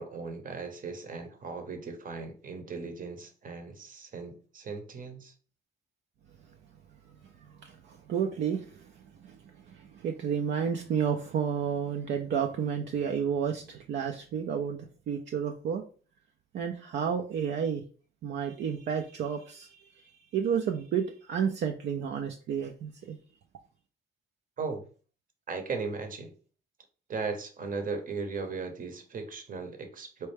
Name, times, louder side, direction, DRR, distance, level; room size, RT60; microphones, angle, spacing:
voice 1, 0.0-5.3 24.6-24.8 25.5-26.3 27.1-30.3, right 4 dB, 45° right, 7 dB, 0.8 m, -37 dB
voice 2, 7.5-15.8 16.5-17.8 18.2-23.2, right 7 dB, 65° right, 4 dB, 0.5 m, -31 dB
4.3 x 2.2 x 3.3 m, 0.39 s
cardioid pair, 90°, 20 cm